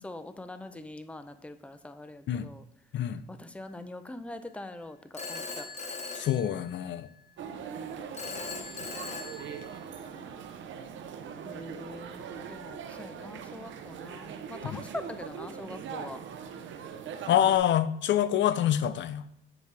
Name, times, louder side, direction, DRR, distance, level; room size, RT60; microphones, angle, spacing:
voice 1, 0.0-2.7 3.3-5.7 7.4-8.1 11.4-16.2, left 2 dB, 5° left, 10 dB, 0.6 m, -43 dB
Telephone, 5.1-7.1 8.1-10.1, left 4 dB, 35° left, 1.1 m, -40 dB
voice 2, 6.1-7.1 14.7-14.8 17.3-19.2, left 11 dB, 65° left, 12 dB, 0.6 m, -26 dB
sound 1, 7.4-17.6, right 7 dB, 70° right, 0.8 m, -41 dB
9.1 x 5.2 x 3.4 m, 0.80 s
cardioid pair, 90°, 20 cm